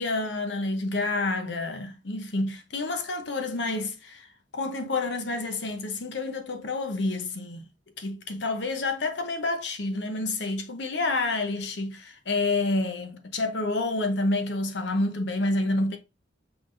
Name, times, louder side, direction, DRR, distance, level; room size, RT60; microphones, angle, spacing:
voice 1, 0.0-7.6 8.0-16.0, left 2 dB, 75° left, 0.9 m, -29 dB
5.8 x 3.5 x 2.6 m
head